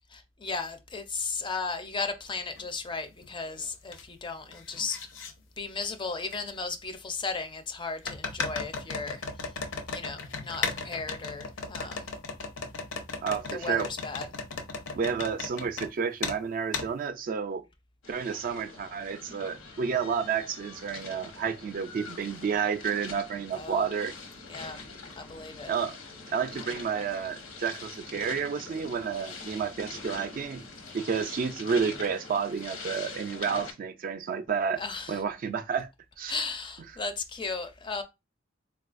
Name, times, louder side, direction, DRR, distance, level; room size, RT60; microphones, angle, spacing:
voice 1, 0.1-5.0 5.6-9.2 9.9-12.1 13.5-14.3 23.5-23.8 24.5-24.8 25.2-25.7 34.8-35.2 36.3-38.0, left 4 dB, 25° left, 0.4 m, -35 dB
sound 1, 2.6-2.7 3.2-4.0 4.3-5.3 6.3-6.4 8.0-15.9 16.2-16.4 16.7-16.9, left 4 dB, 70° left, 0.6 m, -36 dB
voice 2, 13.2-13.9 14.9-17.6 18.1-24.1 25.7-26.0 26.3-30.6 30.9-34.8 35.1-35.9 36.2-36.4, right 6 dB, 45° right, 0.3 m, -30 dB
sound 2, 18.0-33.7, left 4 dB, 85° left, 0.9 m, -44 dB
4.0 x 2.3 x 2.4 m
head